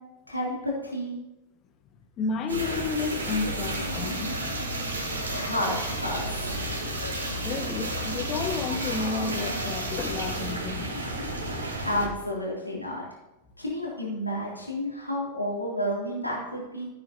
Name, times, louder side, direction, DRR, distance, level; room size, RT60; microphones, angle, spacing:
voice 1, 0.3-1.2 5.3-6.5 11.3-13.0 13.6-16.9, left 1 dB, 90° left, -4 dB, 3.1 m, -31 dB
voice 2, 2.2-4.3 6.8-7.0 7.4-10.9, left 4 dB, 30° left, 6 dB, 1.2 m, -31 dB
sound 1, 2.5-12.1, right 1 dB, 75° right, 2.8 m, -31 dB
15.0 x 8.8 x 2.9 m, 1.0 s
figure-of-eight pair, 90°, 0 cm